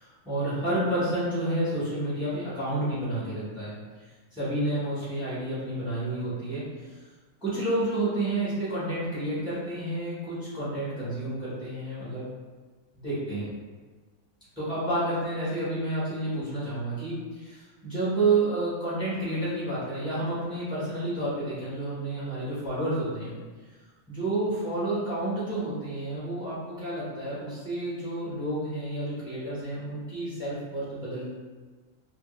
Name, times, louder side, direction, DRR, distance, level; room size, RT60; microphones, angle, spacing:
voice 1, 0.0-3.8 4.3-6.7 7.4-12.3 13.0-13.5 14.6-23.3 24.1-31.3, right 2 dB, 5° right, -11 dB, 1.0 m, -30 dB
2.3 x 2.1 x 3.1 m, 1.4 s
omnidirectional pair, 1.4 m